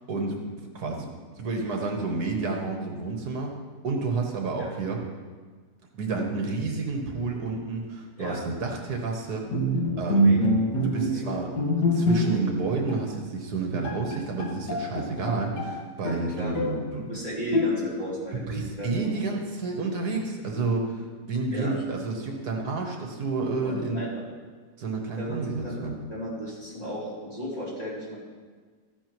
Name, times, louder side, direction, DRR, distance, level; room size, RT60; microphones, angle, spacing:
voice 1, 0.1-0.4 0.7-1.1 1.4-3.5 3.8-5.0 5.9-9.4 10.0-10.5 10.8-11.5 11.8-17.1 18.3-24.0 24.8-25.9, right 3 dB, 70° right, 1 dB, 1.7 m, -30 dB
Bowed string instrument, 9.5-12.6 12.9-13.1 13.5-13.6 13.8-15.7 16.0-16.9 17.5-18.1, equal, 85° left, 2.2 m, -25 dB
voice 2, 10.1-10.6 11.1-11.4 16.3-16.5 17.0-19.2 21.5-21.7 23.6-24.2 25.2-25.8 26.1-28.1, right 1 dB, 20° left, -8 dB, 3.4 m, -35 dB
13.5 x 11.0 x 3.1 m, 1.5 s
omnidirectional pair, 1.7 m